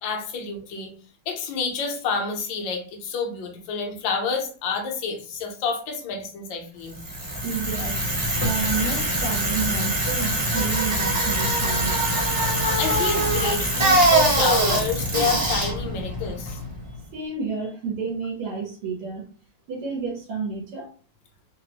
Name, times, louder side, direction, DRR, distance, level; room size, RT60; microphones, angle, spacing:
voice 1, 0.0-0.9 1.3-7.0 12.8-16.6, left 5 dB, 70° left, 3 dB, 1.3 m, -28 dB
Bicycle, 6.9-17.0, right 1 dB, 30° right, 0.7 m, -23 dB
voice 2, 7.4-12.0 17.1-19.3 19.7-20.9, right 5 dB, 90° right, -2 dB, 1.7 m, -30 dB
3.9 x 2.0 x 2.8 m, 0.40 s
omnidirectional pair, 2.3 m